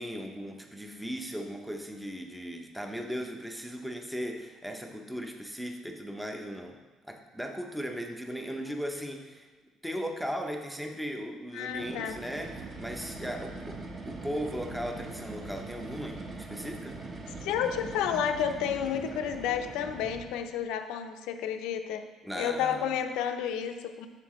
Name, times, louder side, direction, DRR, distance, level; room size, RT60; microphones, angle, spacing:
voice 1, 0.0-6.8 7.0-9.5 9.8-13.8 14.1-17.0 22.2-22.9, equal, 5° right, 3 dB, 0.6 m, -37 dB
voice 2, 11.5-12.2 17.4-22.0 22.4-24.1, left 8 dB, 90° left, 7 dB, 0.6 m, -31 dB
sound 1, 11.7-20.5, right 2 dB, 35° right, 1.0 m, -42 dB
7.5 x 6.7 x 3.1 m, 1.3 s
cardioid pair, 130°, 0 cm